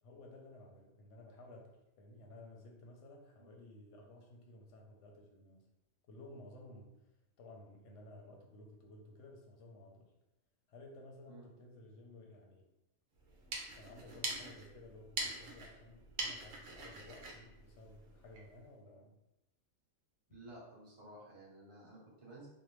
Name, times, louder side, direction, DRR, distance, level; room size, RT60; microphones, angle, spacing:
voice 1, 0.0-5.7 6.1-7.1 7.4-10.1 10.7-12.7 13.7-19.2, left 2 dB, 70° left, 0 dB, 0.8 m, -55 dB
sound 1, 13.2-18.5, right 2 dB, 75° right, 0.9 m, -44 dB
voice 2, 20.3-22.5, right 1 dB, 25° right, -6 dB, 0.7 m, -54 dB
2.6 x 2.0 x 3.0 m, 0.90 s
omnidirectional pair, 1.5 m